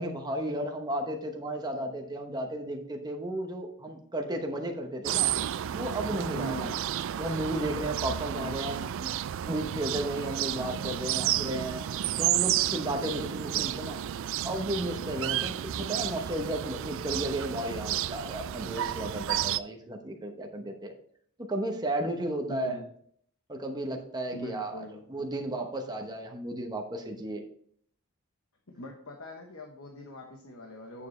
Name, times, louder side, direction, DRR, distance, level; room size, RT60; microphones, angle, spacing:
voice 1, 0.0-5.3 5.7-6.7 7.1-9.1 9.4-11.8 12.2-14.0 14.4-20.9 21.5-22.8 23.5-27.4, right 1 dB, 20° right, 2 dB, 0.9 m, -34 dB
sound 1, 5.0-19.6, right 11 dB, 60° right, 0.3 m, -31 dB
voice 2, 6.3-6.8 8.4-8.5 22.5-22.9 24.3-25.0 28.7-31.1, equal, 70° left, 2 dB, 1.1 m, -41 dB
9.1 x 7.0 x 3.2 m, 0.63 s
head